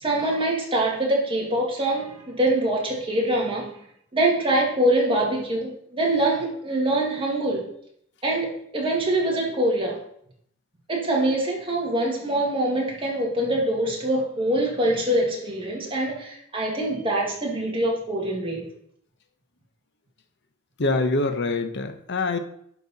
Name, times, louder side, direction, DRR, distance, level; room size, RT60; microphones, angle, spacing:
voice 1, 0.0-3.7 4.1-7.6 8.2-10.0 10.9-18.6, right 1 dB, 25° right, -2 dB, 2.0 m, -24 dB
voice 2, 20.8-22.4, left 3 dB, 55° left, 7 dB, 0.9 m, -24 dB
11.0 x 4.4 x 4.1 m, 0.70 s
head